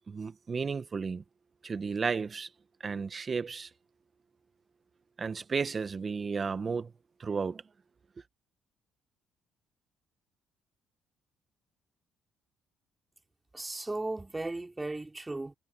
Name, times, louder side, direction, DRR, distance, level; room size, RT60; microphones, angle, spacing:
voice 1, 0.1-1.2 1.6-2.5 2.8-3.7 5.2-6.9 7.2-7.6, right 5 dB, 40° right, 1.6 m, -33 dB
voice 2, 13.5-15.5, right 2 dB, 15° right, 3.2 m, -36 dB
supercardioid pair, 70°, 0 cm